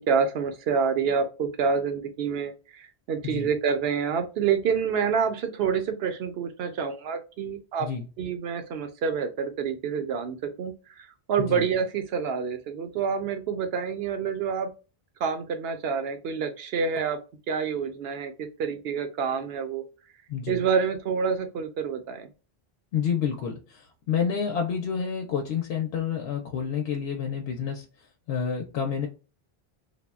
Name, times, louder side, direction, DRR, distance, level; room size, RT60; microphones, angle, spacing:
voice 1, 0.1-7.9 8.2-14.7 15.2-17.2 17.5-19.8 20.5-22.3, right 6 dB, 75° right, 8 dB, 0.9 m, -27 dB
voice 2, 20.3-20.6 22.9-27.8 28.3-29.1, left 7 dB, 85° left, 2 dB, 0.8 m, -29 dB
3.6 x 2.1 x 2.3 m, 0.32 s
omnidirectional pair, 1.0 m